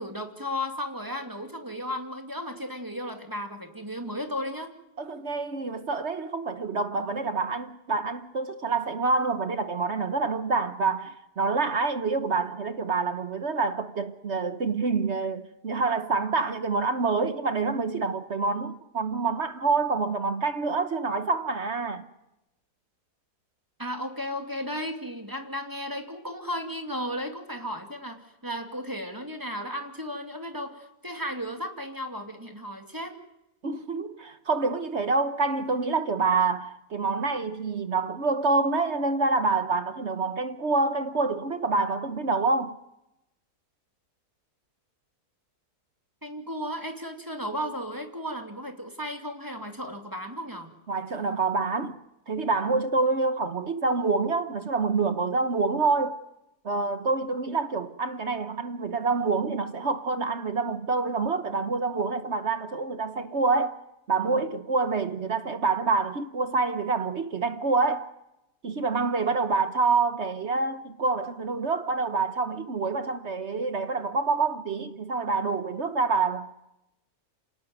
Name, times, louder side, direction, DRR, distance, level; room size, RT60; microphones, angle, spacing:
voice 1, 0.0-4.7 23.8-33.2 46.2-50.7, equal, 10° right, 2.5 m, -34 dB
voice 2, 5.0-22.1 33.6-42.8 50.9-52.0 52.3-56.2 56.6-63.8 64.1-68.1 68.6-76.6, right 4 dB, 50° right, 1.3 m, -27 dB
27.0 x 18.5 x 9.4 m
omnidirectional pair, 1.7 m